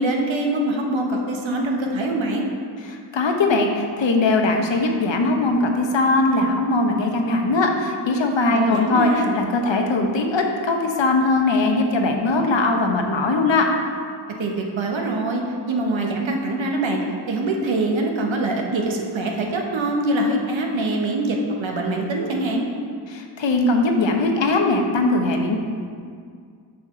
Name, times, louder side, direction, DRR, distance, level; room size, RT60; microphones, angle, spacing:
voice 1, 0.0-2.5 8.5-9.4 14.4-15.4 15.7-17.0 17.3-22.7, right 2 dB, 75° right, 1 dB, 1.1 m, -24 dB
voice 2, 2.8-13.6 23.1-25.6, left 2 dB, 70° left, 3 dB, 1.0 m, -20 dB
6.9 x 5.9 x 3.8 m, 2.1 s
cardioid pair, 45°, 47 cm